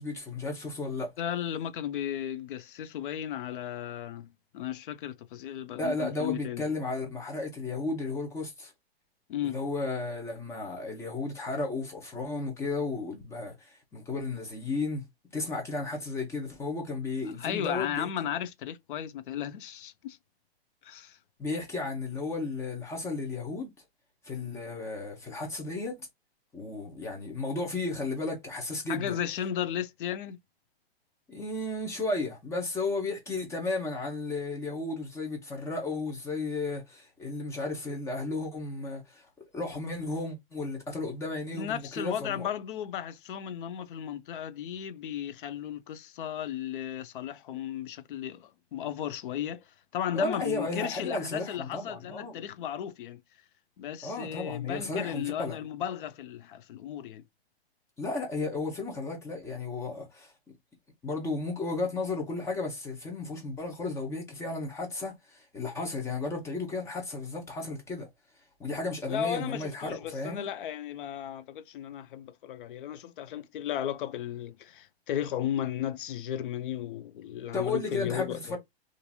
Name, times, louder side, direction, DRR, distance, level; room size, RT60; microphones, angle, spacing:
voice 1, 0.0-1.1 5.8-8.7 9.4-15.1 15.3-18.1 21.4-23.7 24.2-26.0 26.5-29.2 31.3-39.3 39.5-42.5 50.1-52.4 54.0-55.6 58.0-60.3 61.0-68.1 68.6-70.5 77.5-78.6, left 3 dB, 10° left, 0.7 m, -34 dB
voice 2, 1.2-6.6 9.3-9.6 17.4-20.2 20.8-21.2 28.9-30.4 41.5-49.6 49.9-53.2 53.8-57.2 69.1-78.6, left 10 dB, 55° left, 0.5 m, -35 dB
2.8 x 2.5 x 2.3 m
hypercardioid pair, 145°, 32 cm